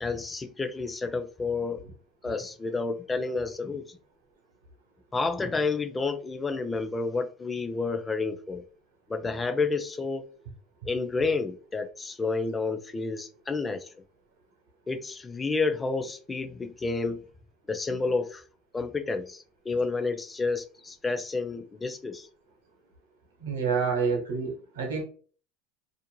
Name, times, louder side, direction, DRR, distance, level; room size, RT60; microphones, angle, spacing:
voice 1, 0.0-1.8 2.2-4.0 5.1-8.6 9.1-10.3 10.9-13.9 14.9-17.2 17.7-18.4 18.7-22.3, left 3 dB, 20° left, 0.4 m, -30 dB
voice 2, 23.4-25.0, right 5 dB, 90° right, 0.8 m, -28 dB
2.5 x 2.1 x 3.0 m
hypercardioid pair, 85°, 0 cm